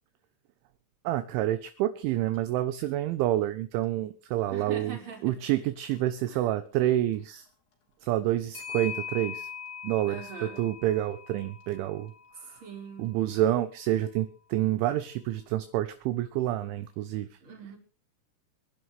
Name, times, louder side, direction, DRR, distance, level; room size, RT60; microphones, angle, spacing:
voice 1, 1.0-5.0 5.2-7.5 8.0-9.5 9.8-12.1 12.5-12.6 13.0-17.4, right 13 dB, 75° right, 11 dB, 3.0 m, -28 dB
Clock, 2.3-2.4 2.9-3.0 5.8-6.0 8.5-12.8, left 7 dB, 55° left, 5.6 m, -41 dB
voice 2, 4.5-5.4 6.3-6.5 10.1-10.7 12.4-13.1 17.4-17.8, right 6 dB, 25° right, 2 dB, 4.8 m, -42 dB
26.0 x 11.0 x 3.3 m, 0.35 s
omnidirectional pair, 5.9 m